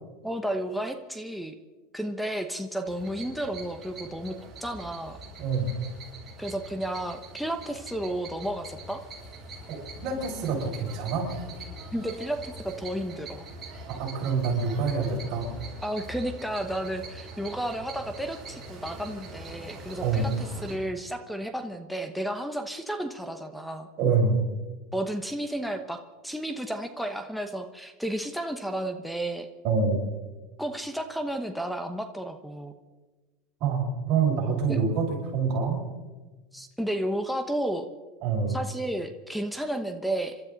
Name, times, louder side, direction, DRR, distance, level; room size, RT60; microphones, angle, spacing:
voice 1, 0.2-1.6 1.9-5.2 6.4-9.0 11.9-13.5 15.8-23.9 24.9-29.5 30.6-32.7 34.7-34.8 36.5-37.9 38.5-40.4, right 1 dB, ahead, 8 dB, 1.0 m, -32 dB
sound 1, 2.8-20.7, right 2 dB, 25° right, 6.4 m, -43 dB
voice 2, 5.4-5.7 9.7-11.3 13.9-15.5 20.0-20.3 24.0-24.4 29.6-30.0 33.6-35.0 35.3-35.8 38.2-38.5, right 5 dB, 50° right, -2 dB, 6.3 m, -26 dB
27.5 x 13.0 x 4.0 m, 1.3 s
supercardioid pair, 135°, 0 cm